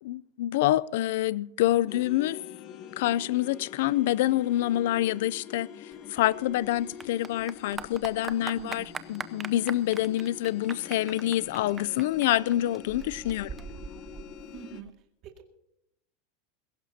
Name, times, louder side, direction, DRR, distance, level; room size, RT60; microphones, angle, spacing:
voice 1, 0.0-2.4 3.0-5.7 6.1-13.5, left 14 dB, 70° left, 0.4 m, -27 dB
sound 1, 1.9-14.8, left 9 dB, 35° left, 0.9 m, -45 dB
Clapping / Applause, 5.9-14.9, right 6 dB, 15° right, 0.6 m, -42 dB
voice 2, 8.6-9.0 14.5-14.9 15.2-15.5, right 9 dB, 35° right, 2.1 m, -44 dB
21.5 x 17.0 x 2.8 m
supercardioid pair, 155°, 0 cm